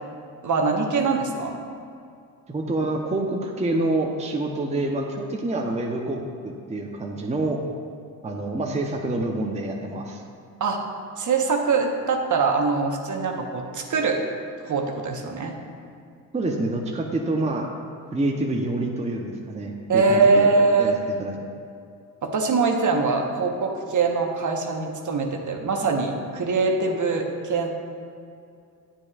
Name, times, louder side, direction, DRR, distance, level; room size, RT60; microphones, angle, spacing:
voice 1, 0.4-1.6 10.6-10.8 11.2-14.2 14.6-15.5 19.9-20.9 22.2-27.7, right 4 dB, 40° right, 2 dB, 1.2 m, -23 dB
voice 2, 2.5-7.6 8.2-10.2 16.3-17.7 18.1-20.5 20.8-21.4, right 2 dB, 15° right, 0 dB, 0.9 m, -27 dB
9.6 x 8.8 x 2.4 m, 2.4 s
hypercardioid pair, 60°, 45 cm